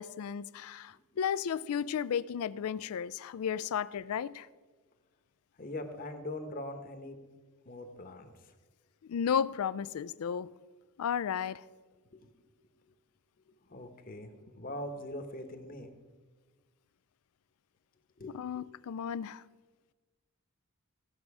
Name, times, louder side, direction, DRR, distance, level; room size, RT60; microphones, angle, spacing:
voice 1, 0.0-4.5 9.0-10.5 11.0-11.7 18.3-19.4, left 7 dB, 70° left, 0.3 m, -33 dB
voice 2, 5.6-7.2 7.6-8.5 12.1-12.3 13.5-16.0 18.2-18.4, left 1 dB, 40° left, 1.0 m, -42 dB
16.5 x 6.2 x 4.8 m
head